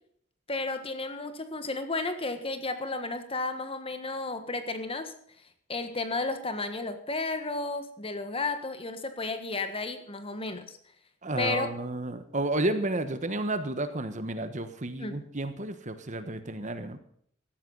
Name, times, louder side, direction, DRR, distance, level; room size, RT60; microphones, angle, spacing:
voice 1, 0.5-5.1 5.7-10.8 11.4-11.7 15.0-15.2, left 3 dB, 25° left, 9 dB, 1.5 m, -33 dB
voice 2, 11.2-17.0, right 2 dB, 35° right, 10 dB, 1.3 m, -31 dB
16.5 x 13.5 x 4.1 m, 0.64 s
head